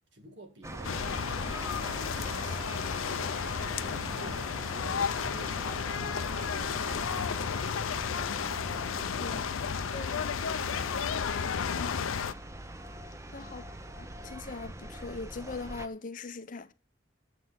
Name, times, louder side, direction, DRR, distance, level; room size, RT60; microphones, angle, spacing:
voice 1, 0.1-5.7 6.0-7.9 9.0-9.5 13.4-13.5, right 1 dB, 60° right, 1.9 m, -50 dB
sound 1, 0.6-15.9, right 1 dB, 15° right, 0.6 m, -42 dB
sound 2, 0.8-12.3, left 7 dB, 90° left, 0.5 m, -33 dB
voice 2, 9.9-10.3 11.7-11.9 13.3-13.6 14.0-16.7, left 3 dB, 40° left, 0.6 m, -41 dB
9.6 x 7.6 x 5.7 m
head